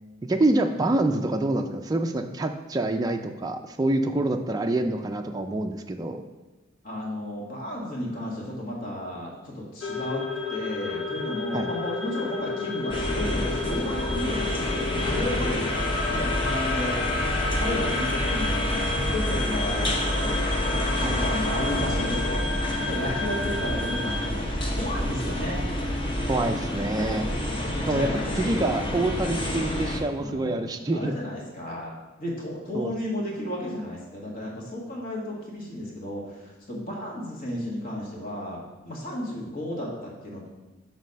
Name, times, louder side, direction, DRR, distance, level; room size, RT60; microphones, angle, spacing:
voice 1, 0.3-6.2 11.5-11.7 21.0-21.2 26.3-27.3 27.9-28.1 28.4-31.1 32.7-32.9, right 2 dB, 20° right, 4 dB, 0.3 m, -26 dB
voice 2, 6.8-15.7 16.1-17.1 17.5-25.6 27.7-28.9 30.2-31.9 32.2-36.3 36.7-40.5, left 1 dB, 45° left, -3 dB, 1.7 m, -33 dB
sound 1, 9.8-24.3, left 4 dB, 75° left, 0.7 m, -32 dB
sound 2, 12.9-30.0, left 1 dB, 25° left, 0.9 m, -28 dB
6.3 x 4.1 x 5.3 m, 1.1 s
head